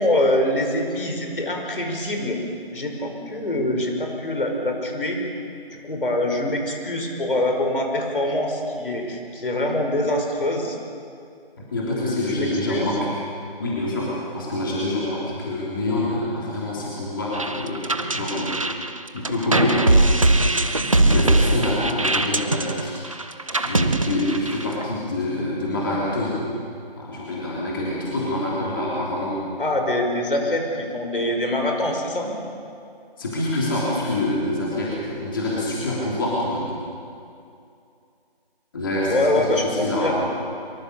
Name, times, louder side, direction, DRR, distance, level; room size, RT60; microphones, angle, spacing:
voice 1, 0.0-2.4 2.7-5.2 5.8-10.8 12.0-12.9 29.6-32.3 39.1-40.2, left 1 dB, 60° left, 2 dB, 5.5 m, -24 dB
voice 2, 11.6-13.1 13.6-18.6 19.1-23.0 23.5-26.4 27.0-29.4 33.2-36.7 38.7-40.3, left 1 dB, 20° left, -6 dB, 3.4 m, -26 dB
sound 1, 17.3-24.8, right 2 dB, 35° right, 0.8 m, -21 dB
24.5 x 23.0 x 7.0 m, 2.5 s
figure-of-eight pair, 170°, 30 cm